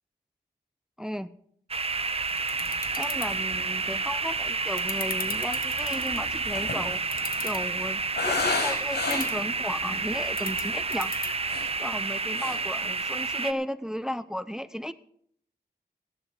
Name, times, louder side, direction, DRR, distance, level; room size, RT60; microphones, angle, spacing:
voice 1, 1.0-1.3 2.9-7.0 7.4-11.1 11.8-14.9, equal, 5° right, 15 dB, 0.5 m, -34 dB
sound 1, 1.7-11.7, left 4 dB, 55° left, 1.4 m, -42 dB
sound 2, 1.7-13.5, right 4 dB, 35° right, 0.7 m, -30 dB
sound 3, 2.3-2.4 2.9-3.0 3.2-3.7 4.5-9.5 10.0-10.1 10.5-10.8 11.2-12.1 12.3-12.7 13.0-13.3, left 3 dB, 75° left, 5.1 m, -33 dB
15.0 x 11.0 x 5.0 m, 0.66 s
wide cardioid pair, 65°, 17 cm